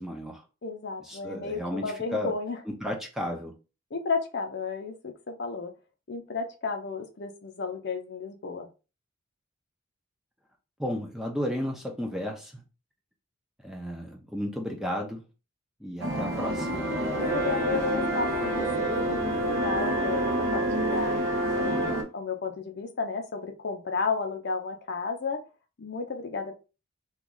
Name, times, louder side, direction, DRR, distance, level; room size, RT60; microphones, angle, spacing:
voice 1, 0.0-0.4 1.0-2.3 2.7-3.5 10.8-12.6 13.6-15.2 15.8-16.8, equal, ahead, 0 dB, 0.5 m, -33 dB
voice 2, 0.6-2.6 3.9-5.7 6.1-8.7 17.2-21.1 21.6-25.4 25.8-26.6, left 4 dB, 50° left, 5 dB, 0.6 m, -33 dB
sound 1, 16.0-22.0, right 1 dB, 65° right, 1.0 m, -30 dB
Brass instrument, 17.2-22.1, right 1 dB, 40° right, 1.0 m, -30 dB
3.0 x 2.3 x 3.8 m, 0.32 s
head